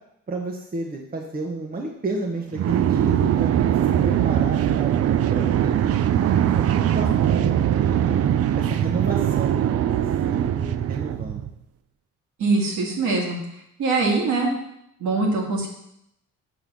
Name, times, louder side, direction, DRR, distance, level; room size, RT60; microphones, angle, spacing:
voice 1, 0.3-3.5 4.0-4.9 5.3-8.2 8.6-9.9 10.3-11.4, right 3 dB, 30° right, 1 dB, 1.0 m, -31 dB
sound 1, 2.5-11.5, right 10 dB, 55° right, 0.5 m, -21 dB
voice 2, 12.4-13.4 13.8-14.5 15.0-15.7, right 3 dB, 70° right, -1 dB, 2.2 m, -22 dB
7.0 x 3.8 x 6.1 m, 0.78 s
cardioid pair, 90°, 30 cm